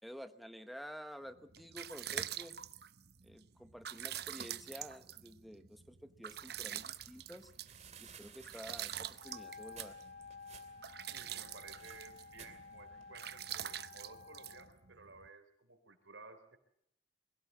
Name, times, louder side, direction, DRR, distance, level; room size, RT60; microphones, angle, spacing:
voice 1, 0.0-2.6 3.2-7.5 8.0-10.0, equal, ahead, 8 dB, 1.1 m, -50 dB
sound 1, 1.3-15.3, right 10 dB, 55° right, 0.8 m, -46 dB
sound 2, 6.3-13.2, right 7 dB, 35° right, 2.5 m, -59 dB
Wind instrument woodwind instrument, 9.1-14.7, left 5 dB, 40° left, 2.1 m, -53 dB
voice 2, 11.1-16.6, right 4 dB, 85° right, 8 dB, 3.7 m, -56 dB
22.5 x 16.0 x 7.4 m, 0.75 s
head